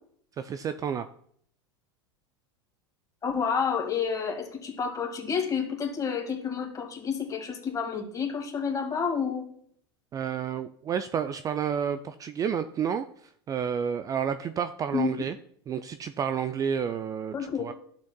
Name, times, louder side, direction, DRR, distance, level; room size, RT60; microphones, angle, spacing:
voice 1, 0.4-1.1 10.1-15.4 15.7-17.7, right 7 dB, 25° right, 11 dB, 0.3 m, -30 dB
voice 2, 3.2-9.5 14.9-15.1 17.3-17.7, left 6 dB, 25° left, 2 dB, 2.0 m, -29 dB
11.5 x 7.3 x 2.2 m, 0.63 s
hypercardioid pair, 100°, 14 cm